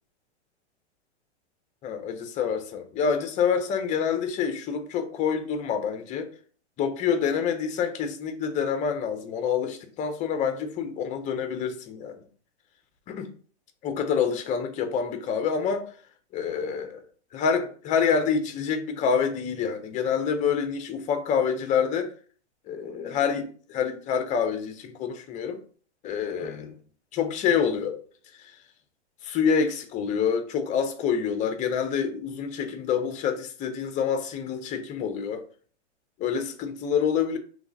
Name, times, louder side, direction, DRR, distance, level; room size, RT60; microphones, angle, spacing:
voice 1, 1.8-6.3 6.8-12.3 13.1-13.3 13.8-16.0 16.3-17.0 17.3-22.1 22.7-25.6 26.0-26.8 27.1-28.0 28.3-28.6 29.2-35.5 36.2-37.4, left 7 dB, 20° left, 0.6 m, -27 dB
6.2 x 3.2 x 2.7 m
hypercardioid pair, 130°, 35 cm